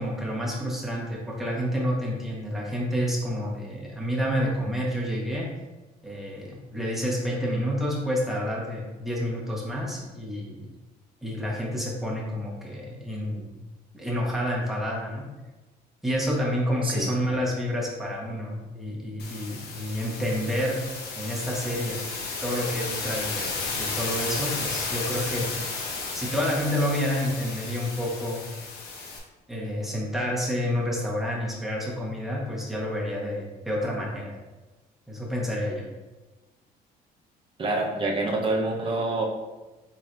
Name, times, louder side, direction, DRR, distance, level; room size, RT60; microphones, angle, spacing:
voice 1, 0.0-5.5 6.0-10.7 11.2-13.5 13.9-15.2 16.0-20.8 21.2-22.0 22.4-25.5 26.1-28.4 29.5-34.3 35.1-35.9, equal, ahead, -5 dB, 1.3 m, -29 dB
sound 1, 19.2-29.2, left 4 dB, 70° left, 1.0 m, -33 dB
voice 2, 37.6-39.2, right 2 dB, 30° right, 0 dB, 0.9 m, -26 dB
4.6 x 3.9 x 2.6 m, 1.1 s
cardioid pair, 110°, 17 cm